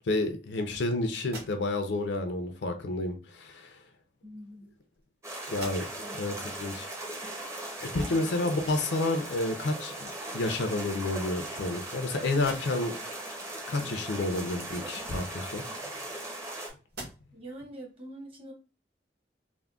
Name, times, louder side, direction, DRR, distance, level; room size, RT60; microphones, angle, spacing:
voice 1, 0.1-3.8 5.5-5.8 6.2-6.9 7.8-12.9 13.7-15.6, left 2 dB, 65° left, 0.5 m, -30 dB
sound 1, 1.2-2.0 3.2-3.3 4.3-5.1 5.5-6.2 6.7-6.8 9.5-9.6 10.0-10.7 11.3-12.0 12.3-13.0 15.0-16.5 16.9-17.5, right 2 dB, 60° right, 1.4 m, -48 dB
voice 2, 4.2-4.7 6.0-6.2 8.1-8.4 17.3-18.5, right 1 dB, 30° right, 1.0 m, -44 dB
sound 2, 5.2-16.7, right 1 dB, 15° right, 0.6 m, -39 dB
3.5 x 2.1 x 2.3 m
head